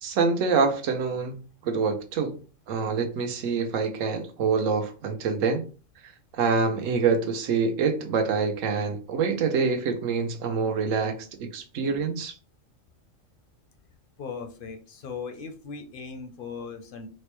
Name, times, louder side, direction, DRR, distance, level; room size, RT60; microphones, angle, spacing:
voice 1, 0.0-2.4 2.7-5.6 6.3-12.3, right 5 dB, 80° right, 1.0 m, -26 dB
voice 2, 14.2-17.1, left 5 dB, 60° left, 0.6 m, -38 dB
4.2 x 2.1 x 3.0 m
omnidirectional pair, 1.3 m